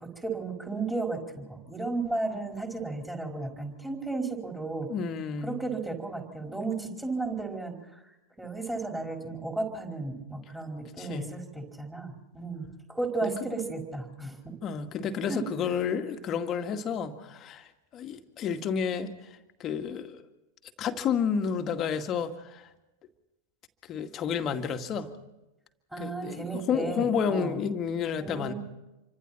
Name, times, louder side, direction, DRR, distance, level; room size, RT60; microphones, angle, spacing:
voice 1, 0.0-4.9 5.4-14.6 15.2-15.4 25.9-27.6 28.2-28.5, right 3 dB, 5° right, 1 dB, 4.9 m, -34 dB
voice 2, 4.9-5.6 11.0-11.3 13.2-13.3 14.6-17.7 17.9-19.3 19.6-20.2 20.8-22.7 23.9-25.1 26.0-28.5, left 7 dB, 30° left, 7 dB, 2.0 m, -30 dB
28.0 x 25.0 x 4.5 m, 0.98 s
figure-of-eight pair, 90°, 0 cm